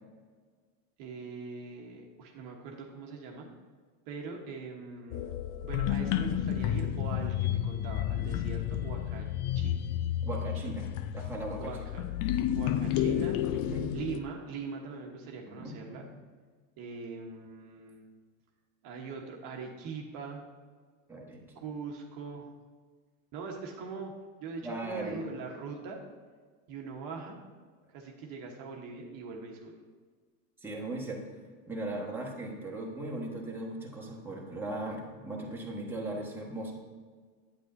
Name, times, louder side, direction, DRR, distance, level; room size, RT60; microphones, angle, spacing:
voice 1, 1.0-3.5 4.1-9.3 9.5-9.7 10.6-10.8 11.6-12.0 12.5-13.4 13.9-16.1 16.8-18.0 18.8-20.4 21.5-22.5 23.3-24.1 24.4-26.0 26.7-27.4 27.9-29.8, right 5 dB, 50° right, 1 dB, 1.2 m, -42 dB
sound 1, 5.1-14.2, left 11 dB, 50° left, 0.5 m, -31 dB
voice 2, 10.2-10.9 11.1-11.7 13.5-13.8 15.5-16.1 21.1-21.4 24.6-25.3 30.6-31.2 31.7-36.7, right 2 dB, 5° right, -3 dB, 1.4 m, -38 dB
8.4 x 8.2 x 2.6 m, 1.5 s
hypercardioid pair, 105°, 43 cm